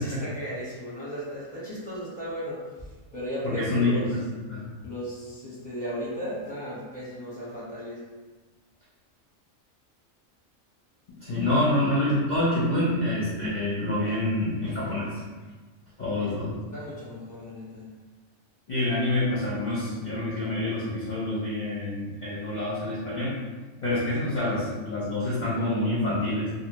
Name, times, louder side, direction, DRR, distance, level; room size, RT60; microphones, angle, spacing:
voice 1, 0.0-2.6 3.1-4.1 4.8-8.0 16.2-16.3 16.7-17.9, equal, 5° left, -8 dB, 1.0 m, -35 dB
voice 2, 3.4-4.2 4.5-4.7 11.2-15.2 16.0-16.6 18.7-23.3 23.8-26.5, left 1 dB, 45° left, -9 dB, 0.7 m, -27 dB
2.7 x 2.4 x 3.0 m, 1.3 s
omnidirectional pair, 1.3 m